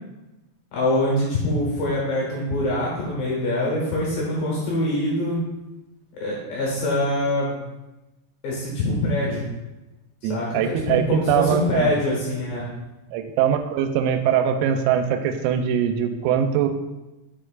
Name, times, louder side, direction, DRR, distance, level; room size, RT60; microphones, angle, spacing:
voice 1, 0.7-5.4 6.2-7.6 8.4-9.5 10.2-12.7, left 1 dB, 90° left, -4 dB, 2.0 m, -24 dB
voice 2, 10.2-11.9 13.1-16.7, right 9 dB, 90° right, 7 dB, 3.3 m, -22 dB
11.0 x 4.5 x 2.4 m, 1.0 s
omnidirectional pair, 6.0 m